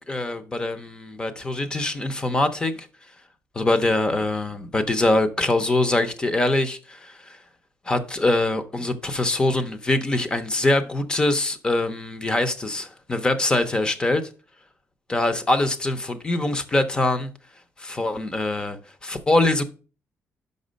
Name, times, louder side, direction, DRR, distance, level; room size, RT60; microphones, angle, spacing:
voice 1, 0.1-2.9 3.6-7.4 7.9-14.2 15.1-17.3 17.8-19.6, left 2 dB, 15° left, 0.6 m, -23 dB
5.8 x 5.3 x 5.1 m
cardioid pair, 175°, 5 cm